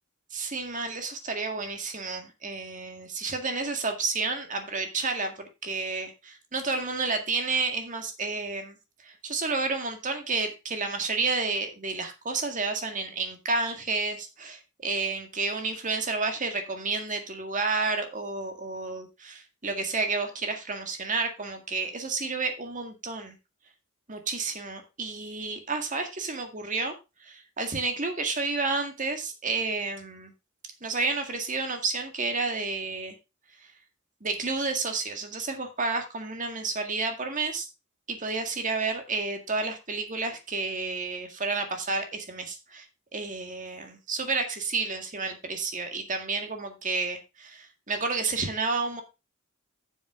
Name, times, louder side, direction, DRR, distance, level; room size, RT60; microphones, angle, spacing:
voice 1, 0.3-8.8 9.0-23.4 24.1-27.0 27.2-30.3 30.8-33.2 34.2-37.7 38.1-42.9 43.1-49.0, right 3 dB, 40° right, 6 dB, 1.9 m, -30 dB
7.6 x 7.1 x 4.7 m, 0.27 s
head